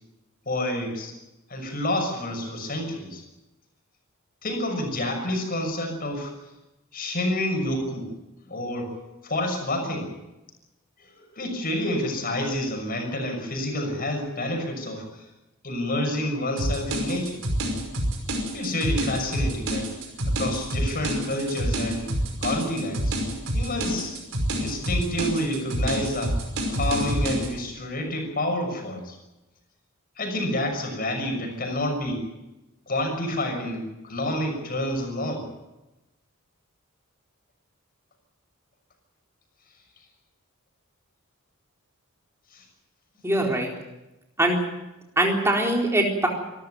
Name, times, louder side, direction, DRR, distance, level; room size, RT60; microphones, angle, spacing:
voice 1, 0.4-1.1 1.5-3.2 4.4-6.3 6.9-8.1 8.5-8.9 9.2-10.1 11.0-15.3 15.6-17.4 18.5-20.0 20.3-22.1 22.4-23.2 23.5-24.2 24.6-26.4 26.7-29.2 30.2-32.3 32.9-35.4 42.5-42.6, left 1 dB, 40° left, 4 dB, 6.5 m, -28 dB
sound 1, 16.6-27.5, right 1 dB, 60° right, 5.5 m, -27 dB
voice 2, 43.2-43.7 44.4-44.6 45.2-46.3, right 1 dB, 10° right, 0 dB, 4.0 m, -22 dB
26.0 x 13.5 x 9.3 m, 1.0 s
head